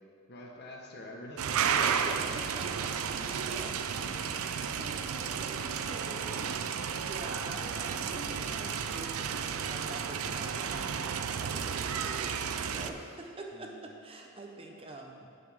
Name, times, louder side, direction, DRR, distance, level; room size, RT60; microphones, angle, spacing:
voice 1, 0.3-2.4 3.2-4.4 7.2-7.6 13.5-13.8 15.2-15.3, left 1 dB, 50° left, 0 dB, 1.3 m, -47 dB
sound 1, 1.4-12.9, right 7 dB, 85° right, 0.5 m, -33 dB
voice 2, 1.6-3.7 4.3-15.3, right 2 dB, 25° right, 1 dB, 0.9 m, -45 dB
11.0 x 8.5 x 3.7 m, 2.4 s
head